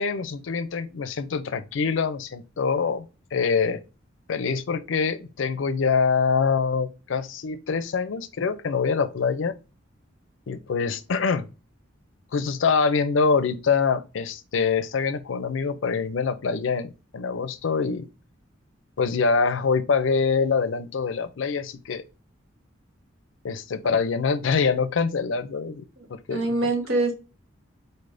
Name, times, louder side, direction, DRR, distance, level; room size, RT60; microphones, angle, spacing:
voice 1, 0.0-3.0 3.3-3.8 4.3-9.6 10.5-11.5 12.3-18.1 19.0-22.0 23.4-25.8 26.1-26.6, left 5 dB, 75° left, 0.5 m, -25 dB
voice 2, 26.0-27.1, right 2 dB, 90° right, 1.3 m, -25 dB
4.1 x 3.3 x 2.6 m
head